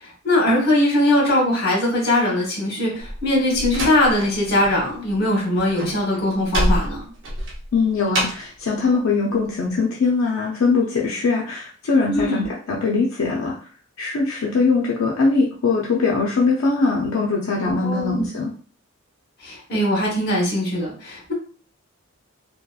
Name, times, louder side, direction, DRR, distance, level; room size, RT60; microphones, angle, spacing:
voice 1, 0.0-7.0 12.1-12.5 17.6-18.3 19.4-21.3, left 1 dB, 50° left, -2 dB, 1.1 m, -21 dB
Slam, 3.0-4.8 5.1-8.6, equal, 60° right, 0.6 m, -26 dB
voice 2, 7.7-13.6 14.0-18.5, left 4 dB, 70° left, -2 dB, 0.4 m, -21 dB
2.9 x 2.2 x 2.2 m, 0.41 s
head